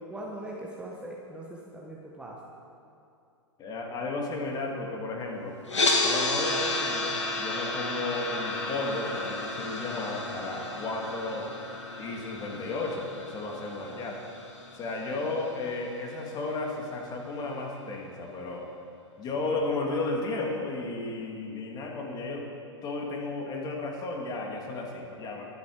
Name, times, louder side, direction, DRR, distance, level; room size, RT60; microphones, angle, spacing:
voice 1, 0.0-2.4, right 1 dB, 5° right, -3 dB, 1.5 m, -40 dB
voice 2, 3.6-5.6 6.0-11.5 12.0-14.2 14.7-18.7 19.2-22.5 22.8-25.4, left 2 dB, 25° left, 0 dB, 2.5 m, -33 dB
sound 1, 5.7-15.8, left 2 dB, 75° left, 2.3 m, -32 dB
23.0 x 8.5 x 5.0 m, 2.6 s
figure-of-eight pair, 105°, 15 cm